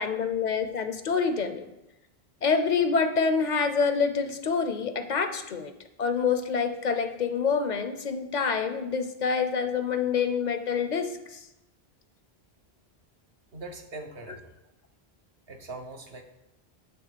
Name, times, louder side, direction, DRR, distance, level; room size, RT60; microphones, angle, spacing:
voice 1, 0.0-1.7 2.4-5.7 6.0-11.4, left 5 dB, 50° left, 9 dB, 0.7 m, -27 dB
voice 2, 13.5-14.5 15.5-16.2, right 2 dB, 70° right, 3 dB, 1.2 m, -41 dB
9.4 x 3.4 x 6.7 m, 0.91 s
omnidirectional pair, 1.0 m